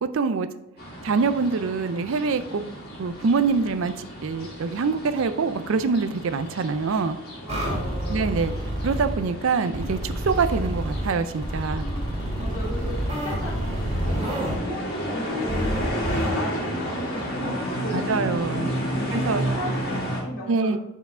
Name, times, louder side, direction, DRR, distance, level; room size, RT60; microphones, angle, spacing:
voice 1, 0.0-0.5 1.0-2.7 3.0-7.2 8.1-8.5 8.8-11.9 17.9-18.7 19.1-19.4 20.5-20.8, right 4 dB, 65° right, 10 dB, 0.4 m, -25 dB
sound 1, 0.8-20.2, equal, 45° left, 1.9 m, -32 dB
voice 2, 7.4-8.3 11.8-13.5 14.0-14.2 14.5-20.8, equal, 70° left, -4 dB, 2.1 m, -36 dB
sound 2, 7.5-9.2 9.7-11.0 11.4-14.6 15.5-16.3, right 1 dB, 30° right, 2.2 m, -28 dB
5.8 x 4.6 x 4.3 m, 0.93 s
head